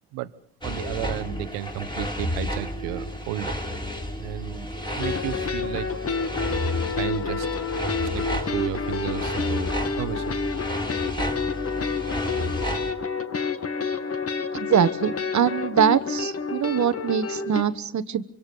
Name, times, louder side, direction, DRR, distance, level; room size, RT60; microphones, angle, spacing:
sound 1, 0.6-12.9, equal, 10° left, 4.1 m, -32 dB
voice 1, 0.6-3.6 4.2-4.7 4.9-5.9 7.0-7.5 8.0-9.7 10.0-10.4, right 15 dB, 75° right, 15 dB, 1.2 m, -33 dB
sound 2, 5.0-17.6, left 5 dB, 35° left, 1.9 m, -29 dB
voice 2, 14.5-18.2, right 8 dB, 40° right, 13 dB, 1.3 m, -23 dB
25.5 x 24.5 x 5.4 m, 0.69 s
hypercardioid pair, 65°, 42 cm